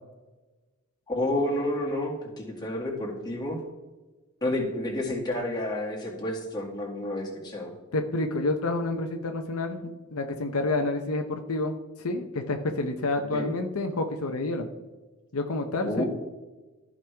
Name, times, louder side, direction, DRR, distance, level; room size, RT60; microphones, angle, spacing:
voice 1, 1.1-3.6 4.4-7.7 13.3-13.5 15.8-16.1, left 1 dB, 20° left, -3 dB, 2.1 m, -30 dB
voice 2, 7.9-14.7 15.3-16.1, left 2 dB, 75° left, 5 dB, 0.8 m, -29 dB
14.0 x 5.4 x 3.4 m, 1.2 s
head